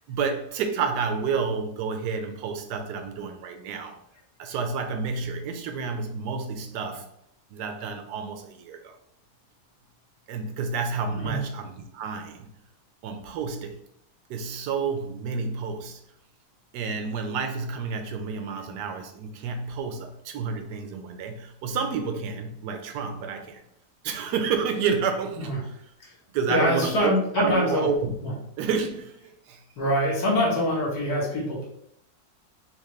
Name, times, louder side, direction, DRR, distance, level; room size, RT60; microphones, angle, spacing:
voice 1, 0.0-4.0 4.4-7.1 7.5-9.0 10.3-12.5 13.0-13.8 14.3-16.0 16.7-23.6 24.0-25.8 26.3-28.1 28.6-29.6, right 5 dB, 85° right, 6 dB, 1.2 m, -30 dB
voice 2, 26.5-27.9 28.2-28.3 29.8-31.7, left 1 dB, 70° left, -3 dB, 1.7 m, -24 dB
3.6 x 2.9 x 3.2 m, 0.73 s
omnidirectional pair, 1.7 m